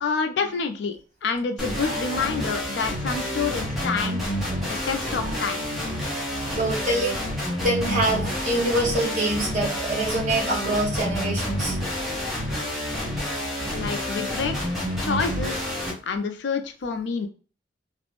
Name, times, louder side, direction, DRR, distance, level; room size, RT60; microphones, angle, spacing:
voice 1, 0.0-4.2 4.7-5.6 13.7-14.7 15.0-15.6 16.0-17.3, left 5 dB, 70° left, 7 dB, 0.4 m, -28 dB
sound 1, 1.6-15.9, equal, ahead, 0.7 m, -29 dB
voice 2, 1.8-2.2 5.2-5.3 6.6-7.2 7.6-11.7, right 1 dB, 45° right, -3 dB, 1.0 m, -25 dB
2.4 x 2.0 x 2.9 m, 0.38 s
head